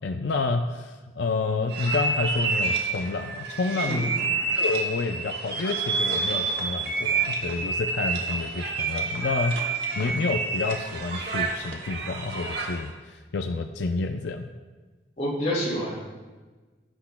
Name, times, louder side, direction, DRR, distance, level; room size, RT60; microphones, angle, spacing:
voice 1, 0.0-4.1 4.5-9.6 10.0-14.5, left 3 dB, 85° left, 4 dB, 0.5 m, -29 dB
sound 1, 1.7-12.9, right 4 dB, 65° right, 1.3 m, -28 dB
voice 2, 3.8-4.2 15.2-15.9, equal, 40° left, -4 dB, 2.6 m, -27 dB
17.5 x 8.1 x 2.2 m, 1.3 s
head